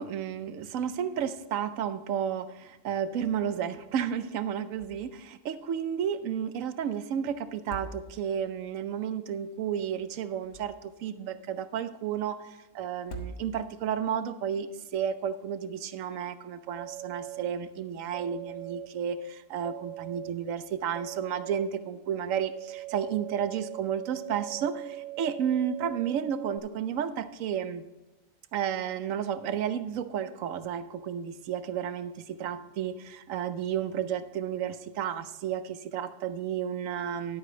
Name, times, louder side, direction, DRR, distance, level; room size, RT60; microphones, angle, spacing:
voice 1, 0.0-12.4 12.7-27.8 28.5-37.4, right 8 dB, 75° right, 12 dB, 1.0 m, -32 dB
sound 1, 4.7-5.2 5.5-5.6 7.5-8.5 10.2-11.1 12.9-13.9, right 2 dB, 65° left, 1.4 m, -43 dB
sound 2, 16.8-17.5 18.1-18.9 19.6-20.3 20.9-21.6 22.3-26.6, right 16 dB, 60° right, 0.4 m, -41 dB
11.5 x 8.3 x 3.9 m, 1.1 s
omnidirectional pair, 1.4 m